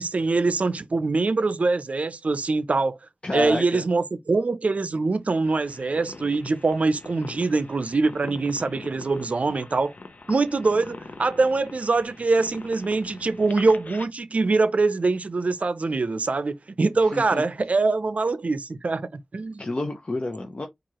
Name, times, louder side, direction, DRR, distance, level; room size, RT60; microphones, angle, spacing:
voice 1, 0.0-3.0 3.3-9.9 10.3-19.6, right 3 dB, 65° right, 0.5 m, -23 dB
voice 2, 3.2-3.8 17.1-17.4 19.6-20.7, left 2 dB, 50° left, 0.8 m, -29 dB
sound 1, 5.4-14.1, left 3 dB, 85° left, 0.6 m, -43 dB
4.6 x 2.5 x 2.9 m
cardioid pair, 45°, 3 cm